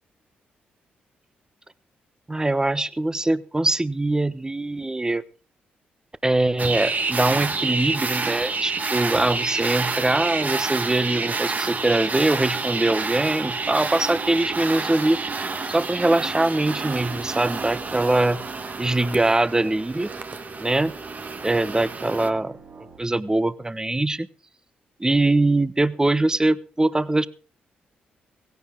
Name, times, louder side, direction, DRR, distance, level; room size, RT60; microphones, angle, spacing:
voice 1, 2.3-5.2 6.2-15.2 15.7-18.4 18.8-20.1 20.6-20.9 21.4-22.6 23.0-24.3 25.0-27.3, right 2 dB, 15° right, 16 dB, 1.0 m, -22 dB
sound 1, 6.6-22.3, right 4 dB, 40° right, 1.5 m, -29 dB
sound 2, 16.7-23.0, right 3 dB, 70° right, 5.8 m, -44 dB
17.0 x 16.0 x 3.8 m, 0.38 s
supercardioid pair, 55°, 4 cm